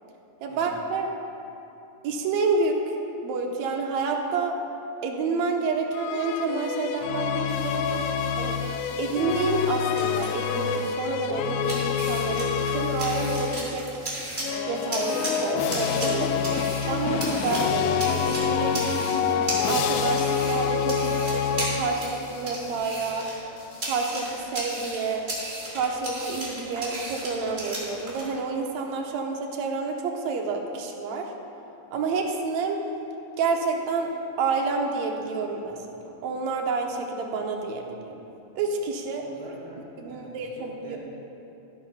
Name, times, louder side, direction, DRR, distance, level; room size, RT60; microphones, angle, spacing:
voice 1, 0.4-1.1 2.0-2.8 3.2-4.5 5.0-7.8 8.4-8.6 9.0-13.9 14.7-18.8 19.7-23.3 23.8-25.3 25.7-31.3 31.9-32.8 33.4-34.1 34.4-35.8 36.2-38.1 38.6-39.2 40.0-41.0, right 4 dB, 70° right, 2 dB, 1.8 m, -29 dB
sound 1, 5.9-13.8 14.4-22.3, left 7 dB, 80° left, 1.7 m, -27 dB
sound 2, 7.5-11.0 11.6-13.6 14.0-17.2 17.5-17.9 18.2-25.2, left 2 dB, 55° left, 1.8 m, -50 dB
sound 3, 9.7-28.3, right 1 dB, 20° right, 1.8 m, -36 dB
voice 2, 39.2-41.0, right 2 dB, 45° right, -5 dB, 2.0 m, -45 dB
14.0 x 5.7 x 5.6 m, 2.8 s
omnidirectional pair, 3.9 m